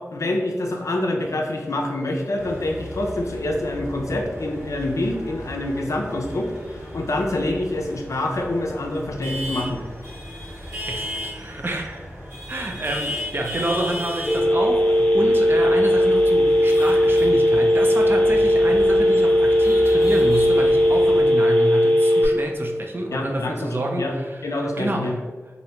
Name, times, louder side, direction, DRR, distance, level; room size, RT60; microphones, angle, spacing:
voice 1, 0.0-9.8 23.1-24.1 24.4-25.2, left 1 dB, 75° left, 1 dB, 0.5 m, -26 dB
sound 1, 2.4-21.2, equal, 60° right, 1.2 m, -35 dB
voice 2, 10.9-12.0 12.5-25.1, right 1 dB, 45° right, 1 dB, 0.5 m, -28 dB
Telephone, 14.3-22.2, equal, 15° left, 0.5 m, -17 dB
3.1 x 2.6 x 2.8 m, 1.4 s
cardioid pair, 45°, 5 cm